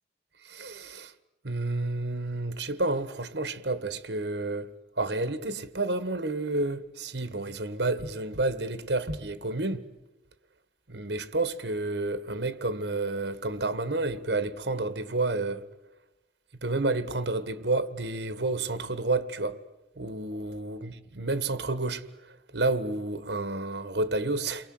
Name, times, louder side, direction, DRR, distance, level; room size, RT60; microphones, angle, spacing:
voice 1, 0.4-1.1 1.4-4.7 5.0-9.8 10.9-15.6 16.6-19.6 20.0-24.7, right 2 dB, 75° right, 1.7 m, -30 dB
30.0 x 23.5 x 8.0 m
head